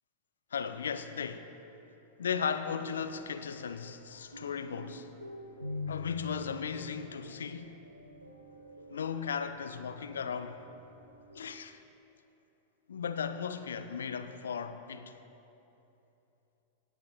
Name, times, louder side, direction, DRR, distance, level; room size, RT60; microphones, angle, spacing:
voice 1, 0.5-1.6 2.2-5.1 5.9-7.8 8.9-10.6 11.3-11.8 12.9-15.2, left 7 dB, 65° left, 0.5 m, -36 dB
sound 1, 3.0-11.5, left 2 dB, 90° right, 0.8 m, -46 dB
17.0 x 5.8 x 4.0 m
figure-of-eight pair, 90°, 0 cm